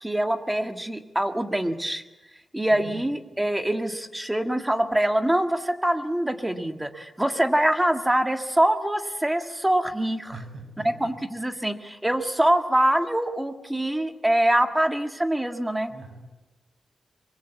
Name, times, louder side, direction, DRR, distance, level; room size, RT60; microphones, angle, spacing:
voice 1, 0.0-2.0 2.5-10.4 11.0-15.9, right 1 dB, 10° right, 6 dB, 1.8 m, -24 dB
voice 2, 2.7-3.1 10.3-11.1 15.9-16.3, right 3 dB, 60° right, 5 dB, 7.4 m, -42 dB
24.0 x 22.5 x 8.2 m, 1.1 s
wide cardioid pair, 115°, 0 cm